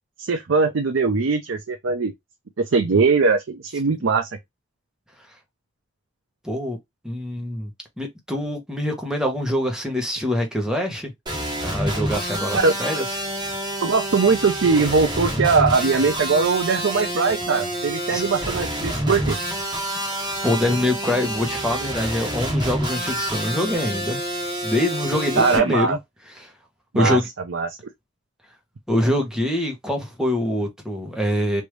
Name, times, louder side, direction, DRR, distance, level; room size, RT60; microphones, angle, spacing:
voice 1, 0.2-2.1 2.6-4.3 12.5-12.7 13.8-19.4 25.4-26.0 26.9-27.2 27.5-27.8, right 4 dB, 80° right, 0.6 m, -20 dB
voice 2, 6.4-6.8 7.0-7.7 8.0-11.1 11.6-13.0 18.1-18.2 20.1-24.2 24.6-26.0 26.3-26.5 26.9-27.3 28.9-31.6, left 1 dB, 5° right, 1.0 m, -24 dB
sound 1, 11.3-25.6, right 1 dB, 25° right, 1.2 m, -27 dB
3.3 x 2.7 x 3.1 m
head